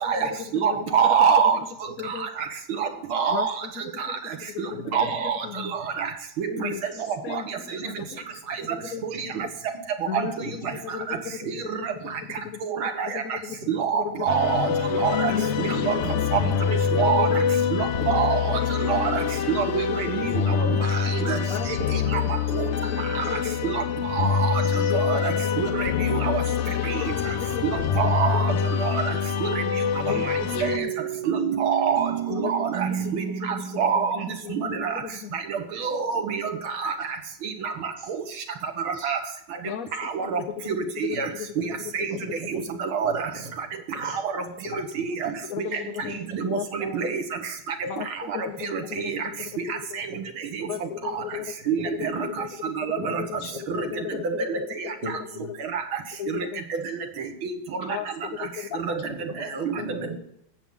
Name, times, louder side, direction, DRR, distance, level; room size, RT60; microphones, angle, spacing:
voice 1, 0.0-0.8 1.0-1.1 2.0-2.3 3.3-3.5 3.7-4.2 4.5-5.0 5.4-5.7 6.5-9.4 10.0-11.5 11.9-12.0 12.4-13.6 13.9-14.6 15.3-16.3 16.7-17.8 18.3-18.9 19.6-20.6 21.5-24.1 24.7-26.1 26.4-28.5 29.1-29.2 30.1-31.1 32.3-35.4 39.6-41.8 44.7-45.2 45.4-47.0 47.8-50.0 50.7-55.0 55.4-55.5 56.2-56.6 57.9-59.9, left 9 dB, 55° left, 7 dB, 1.0 m, -37 dB
voice 2, 0.5-1.6 2.8-3.5 4.9-5.4 6.0-6.1 6.4-6.7 7.3-7.4 10.1-10.3 12.6-13.2 13.7-14.7 15.0-15.3 15.6-15.9 16.9-17.3 17.7-18.6 18.9-19.2 19.5-20.8 21.2-21.4 22.1-22.2 22.5-22.7 23.6-23.8 24.1-24.5 25.0-25.3 25.6-26.4 27.6-28.5 28.8-29.1 29.4-29.5 31.3-32.1 32.5-32.9 33.8-34.2 34.5-34.9 35.8-36.4 36.8-36.9 37.6-37.7 38.9-39.2 40.2-40.4 40.7-40.8 41.0-41.3 41.9-42.1 42.5-43.1 45.2-45.3 46.4-46.6 46.9-47.2 47.8-47.9 48.7-48.8 51.7-52.3 52.8-53.2 54.2-54.6 55.7-55.8 59.6-59.7, right 7 dB, 90° right, 6 dB, 2.2 m, -25 dB
voice 3, 4.7-5.1 6.9-7.1 7.9-8.1 8.8-9.2 10.4-10.7 11.4-11.5 12.0-12.2 13.6-13.7 16.5-16.6 19.3-19.4 22.1-22.9 24.2-24.3 27.5-27.9 30.5-30.8 31.1-31.2 33.0-33.1 38.0-38.1 38.9-39.1 41.1-41.2 41.6-41.7 42.0-42.2 43.0-43.5 43.9-44.2 44.6-45.3 45.7-46.2 48.9-49.1 49.5-49.6 50.1-50.2 50.6-50.7 51.8-51.9 53.0-53.5 53.7-53.8 55.0-55.5 59.1-59.4 59.8-60.2, right 1 dB, 35° right, -1 dB, 2.2 m, -41 dB
sound 1, 14.3-30.8, left 7 dB, 75° left, 0.6 m, -25 dB
sound 2, 30.5-35.2, right 10 dB, 70° right, 1.6 m, -31 dB
18.0 x 7.2 x 3.8 m, 0.74 s
omnidirectional pair, 2.2 m